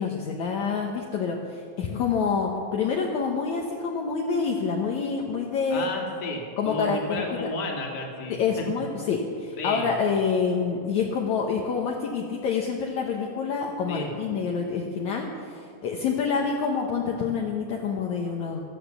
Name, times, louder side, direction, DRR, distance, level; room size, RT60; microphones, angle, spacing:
voice 1, 0.0-5.9 6.6-7.5 8.3-18.6, left 5 dB, 65° left, 0 dB, 2.2 m, -27 dB
voice 2, 5.7-8.7 9.6-9.9 13.9-14.1, left 2 dB, 35° left, 0 dB, 2.4 m, -32 dB
15.0 x 12.5 x 7.0 m, 2.3 s
omnidirectional pair, 3.9 m